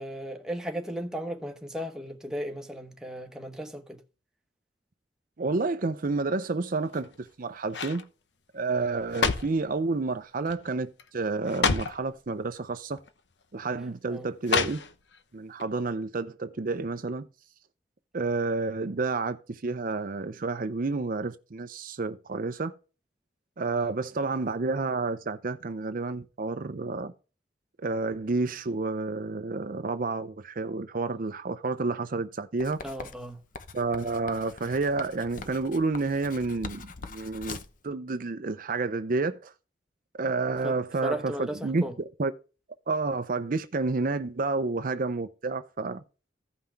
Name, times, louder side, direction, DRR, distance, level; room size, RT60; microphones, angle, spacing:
voice 1, 0.0-4.0 14.1-14.3 24.2-24.3 32.8-33.4 40.6-40.7 41.0-41.9, equal, 5° right, 1.1 m, -36 dB
voice 2, 5.4-8.0 8.5-13.0 13.5-14.8 15.3-17.3 18.1-22.7 23.6-27.1 27.8-32.8 33.7-37.6 37.8-39.5 40.2-41.8 42.2-42.3 42.9-46.0, right 3 dB, 50° right, 0.6 m, -30 dB
sound 1, 6.8-7.3 7.7-8.0 8.8-9.7 10.5-10.7 11.0-11.1 11.5-12.0 13.0-13.1 14.4-15.2 15.6-15.7, left 5 dB, 80° left, 1.0 m, -29 dB
Writing, 32.6-37.8, left 4 dB, 50° left, 0.9 m, -43 dB
15.0 x 5.7 x 3.4 m
head